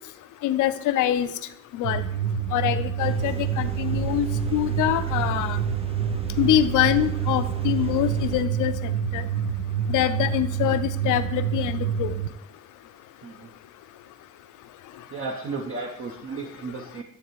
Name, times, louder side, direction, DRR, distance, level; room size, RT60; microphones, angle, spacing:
voice 1, 0.4-1.3 1.7-2.0 2.5-4.3 4.5-5.6 6.4-9.2 9.9-12.1, left 12 dB, 85° left, 12 dB, 0.6 m, -24 dB
sound 1, 1.8-12.3, right 8 dB, 85° right, 0.6 m, -27 dB
sound 2, 3.0-8.5, right 6 dB, 20° right, 0.3 m, -38 dB
voice 2, 15.1-17.0, right 4 dB, 45° right, 2 dB, 0.8 m, -34 dB
9.7 x 3.3 x 4.6 m, 0.75 s
cardioid pair, 90°, 30 cm